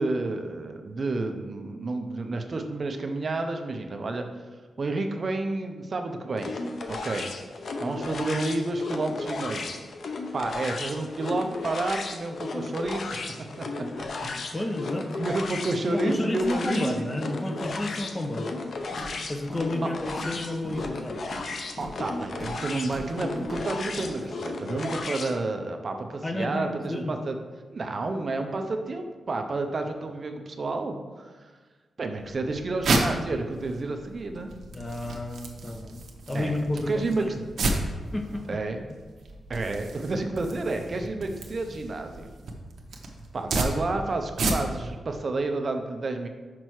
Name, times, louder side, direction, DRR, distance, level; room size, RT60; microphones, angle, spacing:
voice 1, 0.0-4.3 4.8-6.5 6.9-7.3 7.8-9.7 10.3-13.2 13.6-13.7 14.0-14.1 15.1-17.1 21.8-27.4 27.7-31.5 32.0-34.5 36.3-36.6 36.9-37.4 38.5-38.8 39.5-42.3 43.3-46.3, right 2 dB, 40° right, 5 dB, 0.6 m, -30 dB
sound 1, 6.4-25.4, left 3 dB, 60° left, 0.7 m, -35 dB
voice 2, 14.2-15.1 15.9-18.5 19.3-21.2 26.2-27.1 34.7-36.0 36.3-37.4 38.1-38.6, left 1 dB, 20° left, 5 dB, 0.6 m, -31 dB
Walk footsteps, 18.9-19.2 19.5-19.8 20.0-20.4 20.6-21.5 21.8-22.0 22.3-22.6 22.9-23.1 23.4-23.6 24.0-24.1, equal, 35° left, 1.9 m, -39 dB
sound 2, 32.2-44.9, right 2 dB, 70° right, 0.9 m, -32 dB
6.0 x 5.5 x 4.7 m, 1.4 s
wide cardioid pair, 135°, 0 cm